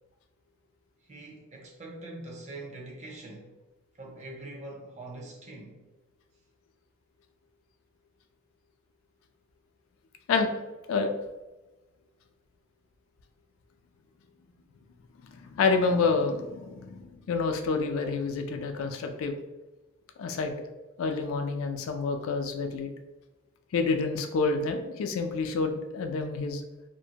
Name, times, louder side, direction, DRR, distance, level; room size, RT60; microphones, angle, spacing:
voice 1, 1.0-3.5 3.9-5.8, right 2 dB, 35° right, 0.5 m, -43 dB
voice 2, 15.4-19.3 20.2-20.5 21.0-22.9 23.7-26.6, left 4 dB, 75° left, 0.3 m, -28 dB
2.6 x 2.1 x 2.7 m
head